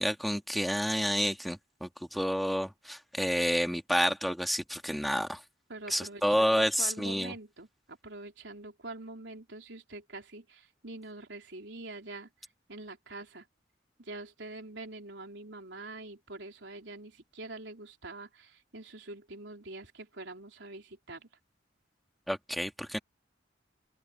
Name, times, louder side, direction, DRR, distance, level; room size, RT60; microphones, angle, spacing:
voice 1, 0.0-5.4 5.9-7.3 22.3-23.0, equal, ahead, 1.9 m, -29 dB
voice 2, 5.7-12.3 12.7-13.5 14.0-21.3, right 2 dB, 70° right, 4.2 m, -45 dB
open air
head